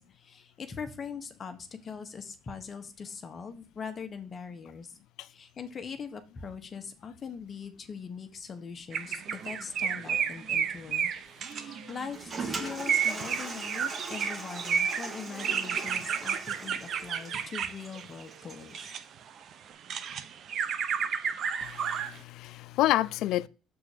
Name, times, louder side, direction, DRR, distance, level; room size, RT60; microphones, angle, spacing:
voice 1, 0.0-5.0 5.3-11.1 11.4-18.9, left 6 dB, 35° left, 1.2 m, -42 dB
sound 1, 8.9-12.1 12.8-19.0 19.5-22.2, right 7 dB, 55° right, 0.8 m, -31 dB
Toilet flush, 11.9-18.8, right 3 dB, 35° right, 1.7 m, -40 dB
voice 2, 21.6-23.5, left 14 dB, 70° left, 0.4 m, -29 dB
6.9 x 4.1 x 6.6 m
cardioid pair, 100°, 0 cm